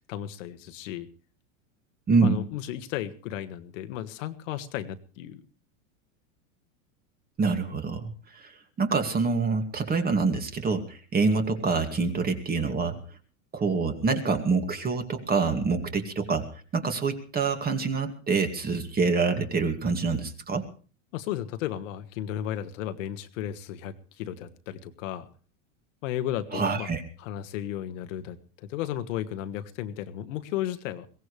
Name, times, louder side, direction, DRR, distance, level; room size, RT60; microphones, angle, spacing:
voice 1, 0.1-1.1 2.2-5.4 21.1-25.3 26.0-26.9 27.2-31.1, left 11 dB, 65° left, 8 dB, 1.6 m, -34 dB
voice 2, 2.1-2.5 7.4-8.5 8.8-13.0 13.5-20.6 26.5-27.0, right 4 dB, 20° right, 6 dB, 2.3 m, -26 dB
22.0 x 17.0 x 3.3 m, 0.38 s
supercardioid pair, 125°, 40 cm